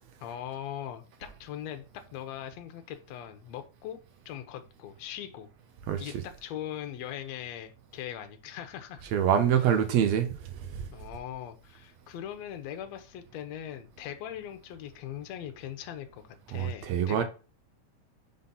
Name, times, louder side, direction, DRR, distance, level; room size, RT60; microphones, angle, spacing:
voice 1, 0.2-1.9 2.1-4.0 4.3-5.5 6.0-6.2 6.4-9.1 10.9-17.2, left 10 dB, 70° left, 1.9 m, -40 dB
voice 2, 5.9-6.2 9.1-10.9 16.5-17.2, right 9 dB, 75° right, 1.7 m, -26 dB
5.3 x 3.9 x 5.5 m
omnidirectional pair, 3.5 m